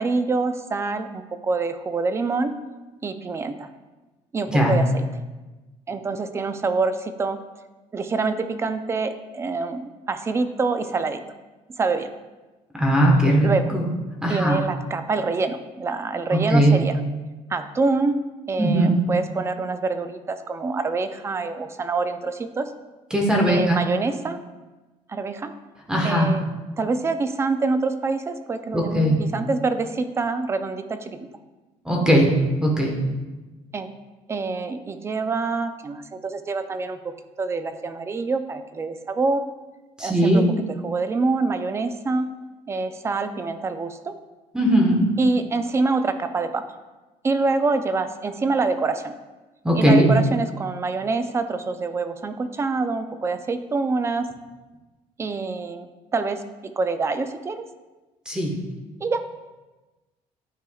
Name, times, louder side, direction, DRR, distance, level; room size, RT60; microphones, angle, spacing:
voice 1, 0.0-2.5 3.0-3.7 4.3-5.1 5.9-7.4 7.9-11.2 11.8-12.1 13.4-13.7 14.2-17.0 17.5-18.2 18.5-22.7 23.5-24.4 25.1-25.5 26.0-26.4 26.8-31.3 33.7-33.9 34.3-39.4 40.0-40.5 40.8-42.3 42.7-44.1 45.2-46.6 47.2-49.1 49.7-54.3 55.2-57.7 59.0-59.2, right 3 dB, 20° right, 9 dB, 0.4 m, -26 dB
voice 2, 12.7-13.9 14.2-14.6 16.3-16.8 18.6-19.0 23.1-23.8 25.9-26.3 28.7-29.2 31.8-32.3 32.6-32.9 40.0-40.5 44.5-45.0 49.6-50.1 58.3-58.5, right 1 dB, 5° right, -1 dB, 1.2 m, -19 dB
11.0 x 4.6 x 2.3 m, 1.2 s
cardioid pair, 140°, 12 cm